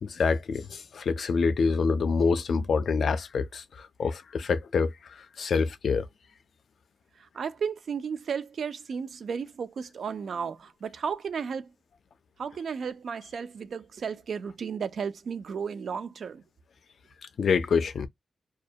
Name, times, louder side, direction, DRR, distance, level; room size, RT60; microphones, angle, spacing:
voice 1, 0.0-6.1 17.4-18.1, left 5 dB, 75° left, 0.3 m, -26 dB
voice 2, 7.2-11.7 12.4-16.4, right 6 dB, 70° right, 0.3 m, -34 dB
2.2 x 2.1 x 2.6 m
wide cardioid pair, 125°, 0 cm